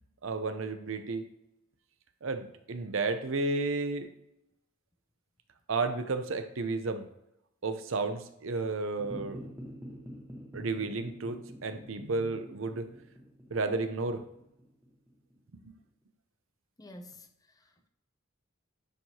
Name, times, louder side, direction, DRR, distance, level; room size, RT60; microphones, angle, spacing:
voice 1, 0.2-1.2 2.2-4.1 5.7-7.0 7.6-9.4 10.5-12.9 13.5-14.2 15.6-15.7, right 3 dB, 70° right, 0.6 m, -32 dB
sound 1, 9.0-15.6, equal, 10° right, 1.0 m, -47 dB
voice 2, 16.8-17.9, left 1 dB, 15° left, 0.5 m, -50 dB
10.0 x 4.6 x 2.8 m
head